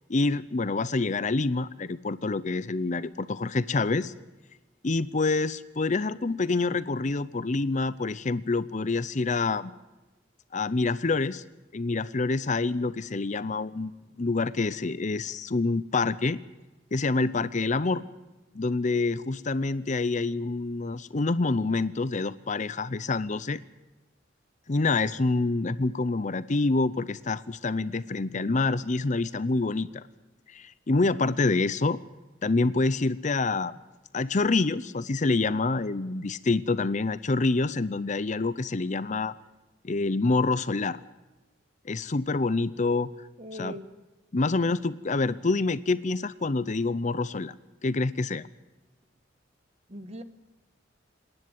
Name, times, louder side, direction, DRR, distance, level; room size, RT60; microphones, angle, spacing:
voice 1, 0.1-4.1 4.8-9.7 10.5-11.4 11.7-16.4 16.9-18.0 18.5-23.6 24.7-30.0 30.5-32.0 32.4-33.7 34.1-39.3 39.8-41.0 41.9-43.3 43.5-43.7 44.3-47.5 47.8-48.5, left 3 dB, 40° left, 16 dB, 0.6 m, -27 dB
voice 2, 43.4-44.0 49.9-50.2, right 1 dB, 35° right, 11 dB, 1.3 m, -40 dB
26.5 x 10.5 x 9.6 m, 1.1 s
head